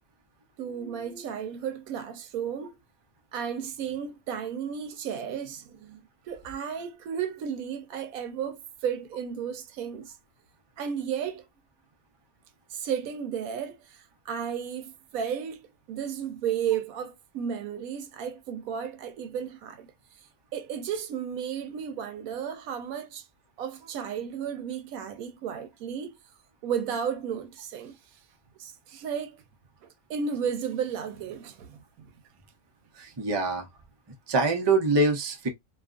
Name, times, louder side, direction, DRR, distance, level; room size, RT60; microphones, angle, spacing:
voice 1, 0.6-2.8 3.3-10.2 10.8-11.4 12.7-19.9 20.5-23.3 23.6-26.2 26.6-28.0 28.6-29.4 29.8-32.1, right 8 dB, 90° right, 1.1 m, -33 dB
voice 2, 33.0-33.7 34.3-35.5, right 3 dB, 30° right, 0.5 m, -24 dB
2.7 x 2.4 x 2.3 m
omnidirectional pair, 1.4 m